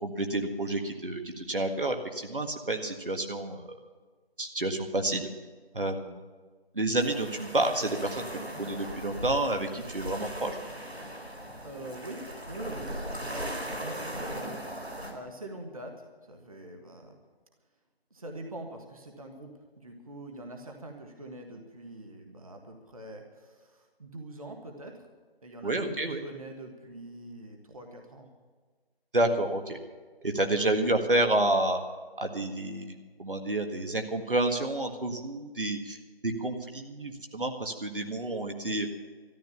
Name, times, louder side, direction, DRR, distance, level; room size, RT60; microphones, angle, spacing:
voice 1, 0.0-3.8 4.4-5.3 5.7-6.2 6.7-8.3 8.6-10.6 25.6-26.2 29.1-29.8 30.2-31.8 32.2-36.0 36.2-38.9, right 2 dB, 60° right, 4 dB, 1.8 m, -29 dB
sound 1, 7.0-15.1, equal, 90° right, 3.9 m, -38 dB
voice 2, 11.6-12.2 12.5-17.1 18.1-25.1 25.4-28.3, right 1 dB, 35° right, 3 dB, 1.6 m, -44 dB
13.5 x 12.0 x 7.1 m, 1.4 s
figure-of-eight pair, 165°, 31 cm